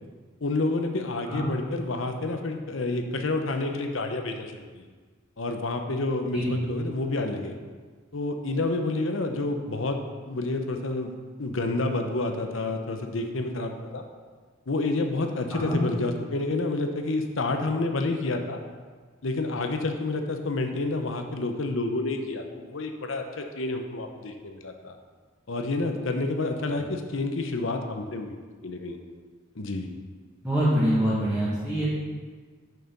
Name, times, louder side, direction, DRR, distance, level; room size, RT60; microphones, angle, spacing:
voice 1, 0.4-4.9 5.4-7.6 8.1-10.0 10.3-14.0 14.7-18.6 19.2-25.0 25.5-28.4 28.6-29.0 29.6-29.9, left 2 dB, 75° left, 5 dB, 0.8 m, -29 dB
voice 2, 30.4-31.9, equal, 5° right, -11 dB, 1.9 m, -25 dB
6.7 x 6.6 x 5.4 m, 1.5 s
head